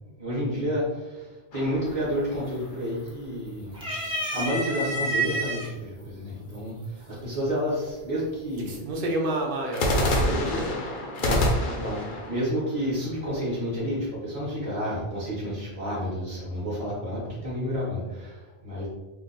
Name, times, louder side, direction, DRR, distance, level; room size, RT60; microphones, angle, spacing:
voice 1, 0.2-3.8 4.3-8.8 11.2-18.9, equal, 35° right, -7 dB, 0.9 m, -30 dB
sound 1, 1.5-3.0 9.7-13.7, left 1 dB, 55° left, 0.7 m, -28 dB
sound 2, 1.9-2.3 2.6-3.3 3.7-5.7 6.5-6.6 7.9-8.3, right 2 dB, 5° right, 0.6 m, -29 dB
voice 2, 8.5-10.8, right 1 dB, 60° right, 0 dB, 0.8 m, -29 dB
2.6 x 2.2 x 3.9 m, 1.2 s
omnidirectional pair, 1.1 m